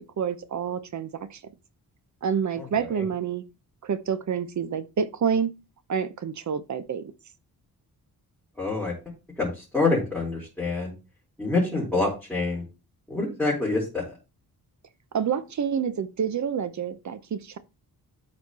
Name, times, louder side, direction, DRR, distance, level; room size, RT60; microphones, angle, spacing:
voice 1, 0.2-1.4 2.2-3.4 3.8-5.5 5.9-7.1 15.1-17.6, right 7 dB, 50° right, 0.8 m, -28 dB
voice 2, 2.6-3.1 8.6-8.9 9.4-10.9 11.4-12.6 13.1-14.1, left 3 dB, ahead, 4.5 m, -26 dB
12.5 x 4.4 x 4.2 m
wide cardioid pair, 145°, 38 cm